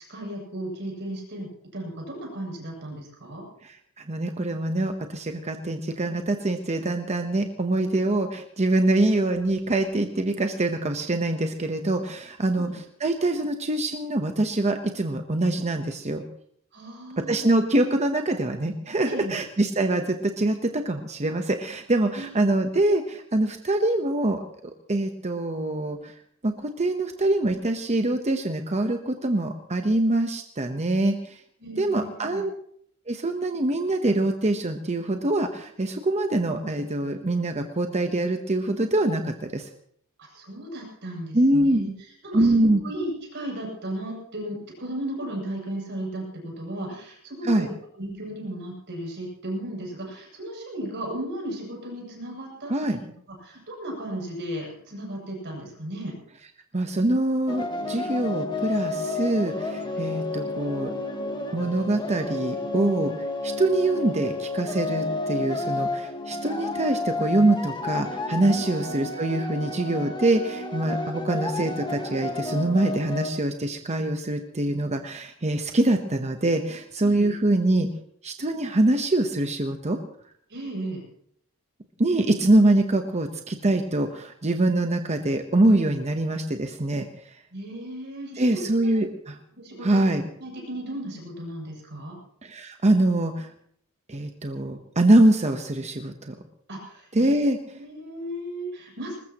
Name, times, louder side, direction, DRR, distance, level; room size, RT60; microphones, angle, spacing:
voice 1, 0.0-3.4 12.5-12.8 16.7-17.5 19.0-19.4 22.1-22.5 31.6-32.4 40.2-47.7 48.0-52.7 53.0-53.1 53.4-56.1 68.5-68.8 77.0-77.3 80.5-81.0 87.5-88.9 89.5-90.0 90.4-92.2 96.7-97.3 97.7-99.2, right 1 dB, 55° right, -1 dB, 7.7 m, -35 dB
voice 2, 3.6-16.2 17.3-24.4 24.9-26.1 26.4-31.4 31.8-32.5 33.1-39.7 41.3-41.8 42.3-42.8 47.4-47.7 52.7-53.0 56.7-60.9 61.5-63.1 63.4-77.9 78.2-80.0 82.0-87.1 88.4-89.3 89.8-90.2 92.4-93.5 94.1-96.4 97.1-97.6, right 1 dB, 30° right, 6 dB, 1.0 m, -24 dB
sound 1, 57.5-73.3, left 2 dB, 20° left, 1.6 m, -31 dB
21.0 x 20.0 x 3.0 m, 0.65 s
head